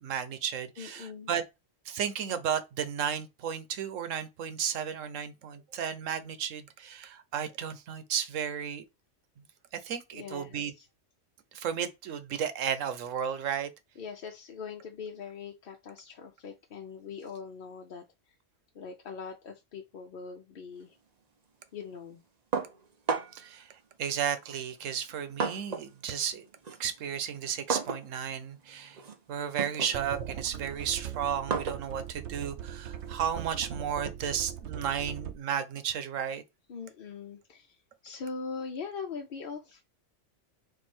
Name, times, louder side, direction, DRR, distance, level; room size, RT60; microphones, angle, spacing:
voice 1, 0.0-1.4 1.9-8.8 9.7-10.7 11.5-13.7 23.3-23.7 24.0-26.5 26.8-29.0 29.3-36.4, right 8 dB, 90° right, 1.1 m, -33 dB
voice 2, 0.8-1.3 10.1-10.9 14.0-18.4 18.7-21.0 21.7-22.2 36.7-39.8, left 5 dB, 55° left, 0.7 m, -42 dB
sound 1, 22.5-23.5 24.4-26.0 26.3-33.6, right 5 dB, 40° right, 0.7 m, -36 dB
sound 2, 29.9-35.3, right 9 dB, 65° right, 0.9 m, -40 dB
4.6 x 2.6 x 4.3 m
omnidirectional pair, 1.3 m